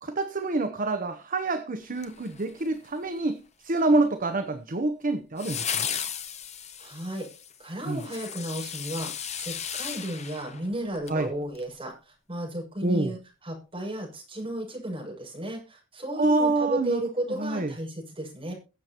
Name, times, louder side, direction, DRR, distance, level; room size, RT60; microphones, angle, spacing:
voice 1, 0.0-5.9 7.9-8.0 11.1-11.3 12.8-13.1 16.1-17.0 17.3-17.7, right 2 dB, 45° right, 0.9 m, -27 dB
sound 1, 1.9-2.9 5.4-11.2 11.6-11.7, left 8 dB, 35° left, 1.3 m, -35 dB
voice 2, 6.8-7.3 7.6-13.2 13.4-18.5, right 1 dB, 30° right, 6.5 m, -34 dB
22.5 x 7.6 x 2.9 m
head